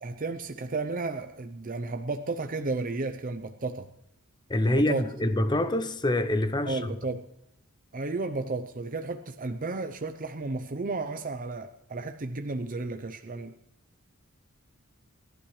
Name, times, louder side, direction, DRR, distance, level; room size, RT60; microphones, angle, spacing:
voice 1, 0.0-3.9 4.6-5.0 6.6-7.2 7.9-13.5, right 3 dB, 40° right, 0.7 m, -33 dB
voice 2, 4.5-6.9, left 1 dB, 20° left, 0.7 m, -26 dB
28.0 x 12.0 x 3.2 m
head